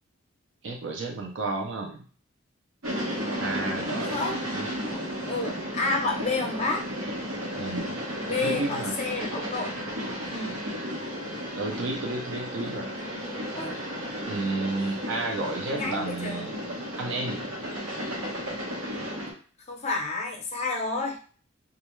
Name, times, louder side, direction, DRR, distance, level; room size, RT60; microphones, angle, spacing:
voice 1, 0.6-2.0 3.4-4.2 4.5-4.7 7.5-7.9 8.4-8.9 11.5-12.9 14.3-16.6 17.0-17.4, right 2 dB, 65° right, 1 dB, 0.5 m, -31 dB
sound 1, 2.8-19.3, equal, 85° right, 1.0 m, -33 dB
voice 2, 4.8-6.8 8.2-9.7 10.3-10.6 13.6-13.8 15.7-16.6 19.7-21.2, left 3 dB, 35° left, 1 dB, 0.5 m, -30 dB
2.3 x 2.2 x 3.0 m, 0.41 s
head